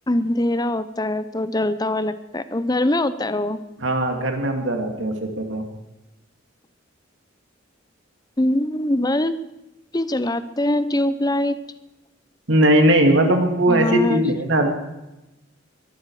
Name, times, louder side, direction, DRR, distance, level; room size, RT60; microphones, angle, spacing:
voice 1, 0.1-3.6 8.4-9.3 9.9-11.6 13.7-14.3, left 1 dB, 20° left, 13 dB, 0.7 m, -22 dB
voice 2, 3.8-5.6 12.5-14.7, right 1 dB, 65° right, 4 dB, 2.6 m, -19 dB
22.5 x 13.0 x 4.9 m, 0.99 s
head